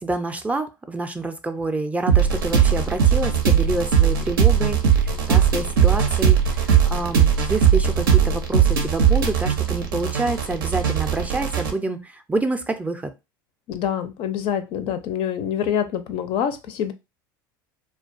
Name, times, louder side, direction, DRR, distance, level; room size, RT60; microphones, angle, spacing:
voice 1, 0.0-13.1, right 2 dB, 10° right, 6 dB, 0.4 m, -27 dB
sound 1, 2.1-11.7, right 8 dB, 85° right, 0.5 m, -19 dB
voice 2, 13.7-16.9, left 9 dB, 55° left, 10 dB, 0.4 m, -26 dB
2.3 x 2.2 x 2.4 m, 0.25 s
hypercardioid pair, 85°, 11 cm